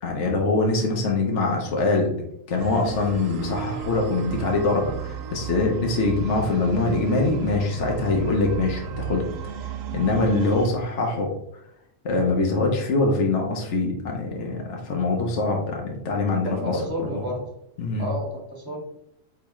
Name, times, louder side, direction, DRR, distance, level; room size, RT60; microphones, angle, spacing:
voice 1, 0.0-2.2 2.5-9.3 9.6-11.3 12.0-17.2 17.8-18.1, left 3 dB, 65° left, 1 dB, 1.3 m, -24 dB
sound 1, 2.6-10.7, right 9 dB, 90° right, 1.0 m, -34 dB
voice 2, 16.4-17.4 18.0-18.8, right 1 dB, 15° right, -1 dB, 2.0 m, -31 dB
8.4 x 3.6 x 3.1 m, 0.76 s
omnidirectional pair, 1.3 m